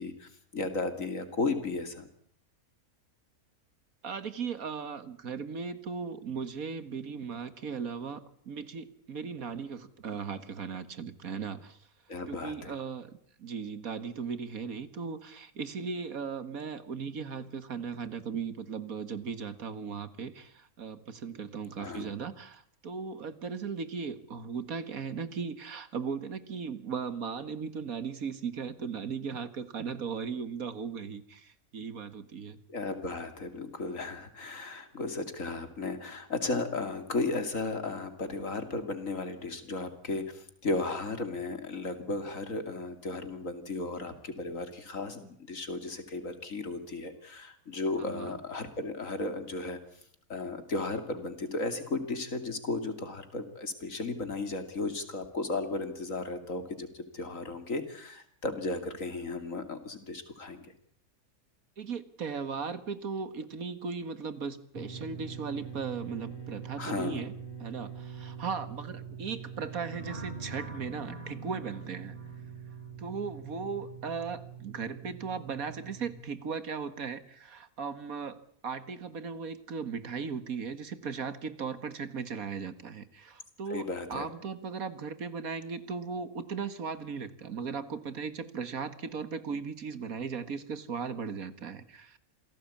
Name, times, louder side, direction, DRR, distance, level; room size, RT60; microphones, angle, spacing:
voice 1, 0.0-2.1 12.1-12.7 21.8-22.1 32.7-49.8 50.3-60.7 66.8-67.3 83.7-84.3, left 3 dB, 65° left, 9 dB, 3.1 m, -35 dB
voice 2, 4.0-11.8 12.3-32.6 48.0-48.4 61.8-67.3 67.6-72.2 73.0-92.2, right 5 dB, 75° right, 13 dB, 2.0 m, -37 dB
sound 1, 64.7-76.2, right 7 dB, 15° left, 2.2 m, -44 dB
sound 2, 69.9-72.8, right 1 dB, 35° right, 7.6 m, -45 dB
27.5 x 17.5 x 8.7 m, 0.63 s
omnidirectional pair, 1.5 m